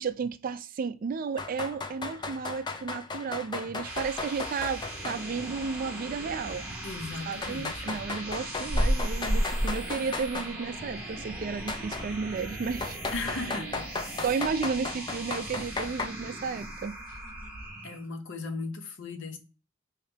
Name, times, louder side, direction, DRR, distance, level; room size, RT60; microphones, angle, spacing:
voice 1, 0.0-6.7 7.3-13.0 13.3-13.7 14.2-17.0, right 5 dB, 45° right, 0.3 m, -33 dB
sound 1, 1.4-5.2 5.5-5.6 6.5-6.6 7.4-10.5 11.7-12.1 12.8-16.1, left 3 dB, 20° left, 0.4 m, -36 dB
sound 2, 3.5-18.1, right 1 dB, 10° right, 1.2 m, -40 dB
voice 2, 6.8-8.0 13.1-13.9 17.8-19.4, left 3 dB, 65° left, 0.7 m, -37 dB
sound 3, 7.0-12.3 12.7-12.8 13.1-14.4, equal, 45° left, 1.2 m, -30 dB
3.1 x 2.8 x 3.3 m
head